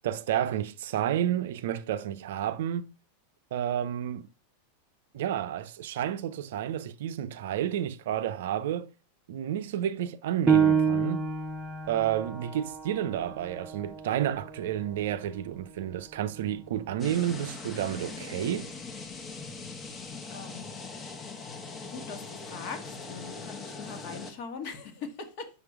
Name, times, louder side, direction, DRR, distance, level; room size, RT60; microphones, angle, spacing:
voice 1, 0.0-2.9 3.5-4.3 5.1-8.9 9.3-11.2 11.9-18.7, right 10 dB, 55° right, 0.5 m, -31 dB
Piano, 10.5-15.6 16.1-16.2 16.8-17.3, right 6 dB, 5° right, 0.9 m, -29 dB
sound 1, 17.0-24.3, left 4 dB, 20° left, 1.2 m, -41 dB
voice 2, 20.3-20.7 21.9-25.5, left 5 dB, 45° left, 1.6 m, -41 dB
5.9 x 5.7 x 4.6 m
figure-of-eight pair, 90°, 0 cm